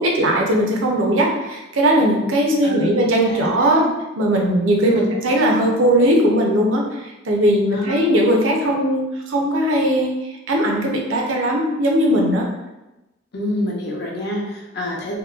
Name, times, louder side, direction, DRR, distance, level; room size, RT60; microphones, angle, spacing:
voice 1, 0.0-3.8 4.2-10.1 10.5-12.5, right 1 dB, 85° right, 0 dB, 0.5 m, -18 dB
voice 2, 2.6-3.5 4.8-5.1 7.7-8.0 13.3-15.2, left 1 dB, 55° left, -2 dB, 0.6 m, -27 dB
2.9 x 2.1 x 2.3 m, 1.0 s
head